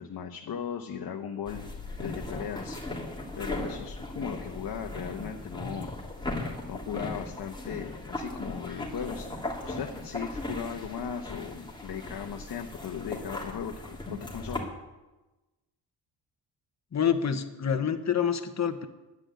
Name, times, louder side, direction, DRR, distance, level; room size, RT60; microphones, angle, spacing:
voice 1, 0.0-1.6 2.0-2.8 3.3-5.9 6.7-14.0 14.3-14.7, left 7 dB, 60° left, 3 dB, 1.1 m, -37 dB
sound 1, 1.5-14.6, left 2 dB, 10° left, 3.1 m, -38 dB
voice 2, 16.9-18.9, left 8 dB, 40° left, 7 dB, 1.2 m, -27 dB
10.0 x 9.9 x 8.3 m, 1.1 s
cardioid pair, 85°, 41 cm